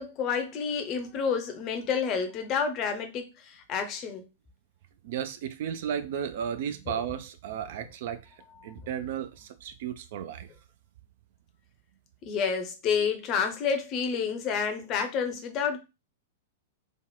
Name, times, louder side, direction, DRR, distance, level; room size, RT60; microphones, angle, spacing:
voice 1, 0.0-4.3 12.2-15.8, left 6 dB, 35° left, 0.6 m, -29 dB
voice 2, 5.0-8.3 8.6-10.5, right 8 dB, 55° right, 0.4 m, -34 dB
3.5 x 2.0 x 2.2 m
figure-of-eight pair, 100°, 0 cm